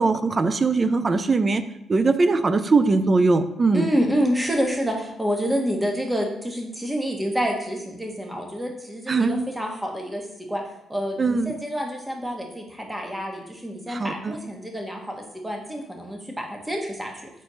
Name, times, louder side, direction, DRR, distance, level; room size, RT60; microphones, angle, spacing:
voice 1, 0.0-1.6 1.9-3.9 9.1-9.5 11.2-11.6 13.9-14.4, right 3 dB, 40° right, 11 dB, 0.6 m, -21 dB
voice 2, 3.7-10.6 10.9-17.3, equal, 10° right, 1 dB, 1.5 m, -28 dB
4.5 x 4.3 x 5.7 m, 0.82 s
supercardioid pair, 55°, 0 cm